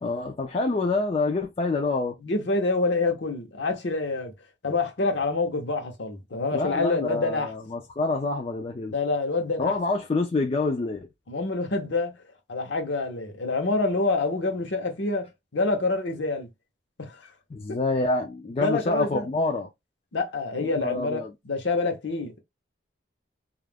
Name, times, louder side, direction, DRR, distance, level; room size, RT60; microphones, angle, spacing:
voice 1, 0.0-2.2 6.5-9.0 9.6-11.1 17.5-19.7 20.6-21.3, left 3 dB, 30° left, 0.4 m, -27 dB
voice 2, 2.2-4.3 4.6-7.5 8.9-9.7 11.3-12.1 12.5-16.5 17.0-17.2 18.6-19.3 20.1-21.2 21.4-22.4, left 3 dB, 70° left, 0.8 m, -27 dB
2.4 x 2.1 x 3.3 m
head